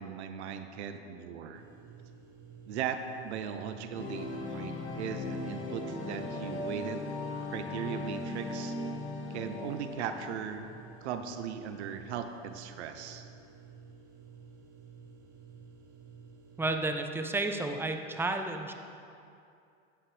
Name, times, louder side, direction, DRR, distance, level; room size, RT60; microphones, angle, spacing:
voice 1, 0.0-1.6 2.7-7.1 7.5-8.7 9.3-10.7 11.0-13.2, right 7 dB, 85° right, 8 dB, 0.7 m, -38 dB
sound 1, 1.5-16.7, right 6 dB, 40° right, 2.1 m, -53 dB
sound 2, 3.9-10.8, left 2 dB, 35° left, 1.7 m, -38 dB
voice 2, 16.6-18.7, right 2 dB, 5° right, 5 dB, 0.7 m, -31 dB
9.7 x 8.7 x 3.3 m, 2.5 s
hypercardioid pair, 90°, 33 cm